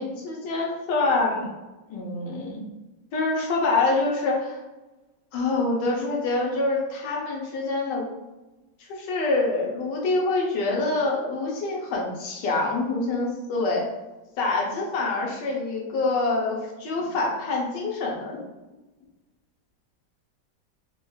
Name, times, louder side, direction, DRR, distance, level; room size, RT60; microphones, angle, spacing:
voice 1, 0.0-1.5 1.9-2.6 3.1-4.6 5.3-8.0 8.9-13.9 14.4-18.4, left 3 dB, 75° left, -2 dB, 1.4 m, -26 dB
4.5 x 2.4 x 2.3 m, 1.1 s
omnidirectional pair, 2.0 m